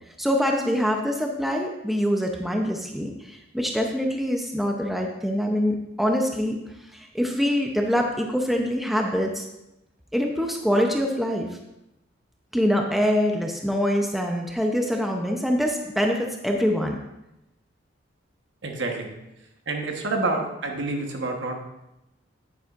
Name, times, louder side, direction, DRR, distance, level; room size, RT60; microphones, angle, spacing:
voice 1, 0.2-6.6 6.9-9.4 10.1-11.5 12.5-17.0, equal, ahead, 1 dB, 0.6 m, -24 dB
voice 2, 18.6-19.1 19.7-21.6, right 2 dB, 65° right, 2 dB, 1.2 m, -28 dB
9.8 x 9.1 x 2.5 m, 0.89 s
head